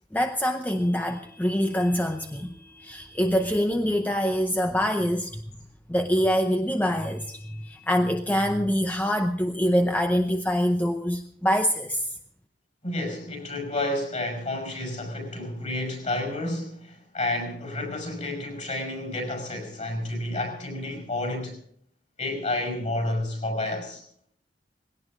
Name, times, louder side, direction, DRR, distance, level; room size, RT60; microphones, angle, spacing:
voice 1, 0.1-5.4 5.9-12.1, equal, 10° left, 6 dB, 0.7 m, -25 dB
voice 2, 12.8-21.6 22.2-24.0, left 1 dB, 40° left, 4 dB, 5.6 m, -30 dB
19.5 x 17.5 x 3.7 m, 0.63 s
head